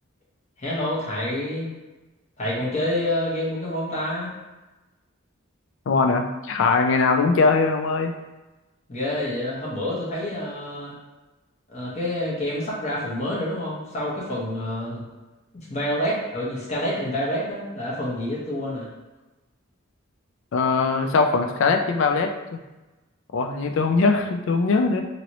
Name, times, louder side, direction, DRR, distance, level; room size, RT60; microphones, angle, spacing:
voice 1, 0.6-1.7 2.4-4.3 8.9-10.9 11.7-15.0 15.7-18.9, left 1 dB, 35° left, -6 dB, 0.9 m, -27 dB
voice 2, 5.9-8.1 20.5-22.6 23.3-25.0, left 4 dB, 70° left, 5 dB, 0.3 m, -21 dB
2.9 x 2.7 x 2.9 m, 1.1 s
head